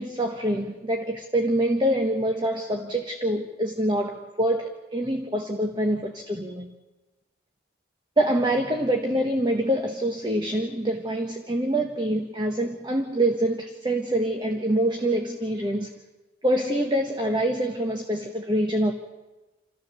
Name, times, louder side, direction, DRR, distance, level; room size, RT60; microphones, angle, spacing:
voice 1, 0.0-6.7 8.2-15.9 16.4-18.9, right 1 dB, 25° right, 3 dB, 1.2 m, -25 dB
28.5 x 13.5 x 6.8 m, 1.2 s
head